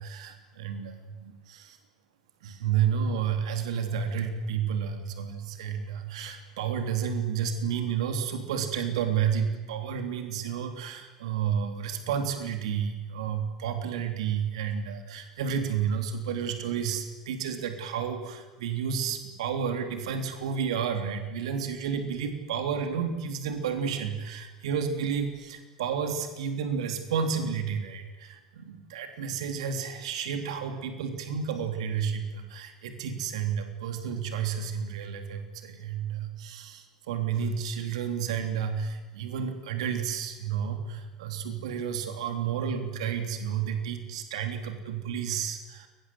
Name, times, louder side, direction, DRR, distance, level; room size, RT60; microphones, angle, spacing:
voice 1, 0.0-1.8 2.4-45.9, right 7 dB, 65° right, 6 dB, 3.6 m, -31 dB
30.0 x 23.5 x 8.0 m, 1.2 s
figure-of-eight pair, 70°, 3 cm